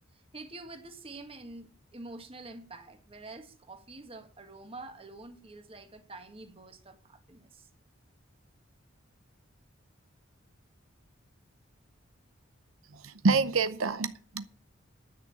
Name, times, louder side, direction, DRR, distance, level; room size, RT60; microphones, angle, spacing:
voice 1, 0.1-7.7, right 2 dB, 25° right, 1.7 m, -47 dB
voice 2, 12.9-14.6, right 4 dB, 90° right, 0.7 m, -28 dB
10.5 x 6.4 x 8.7 m
head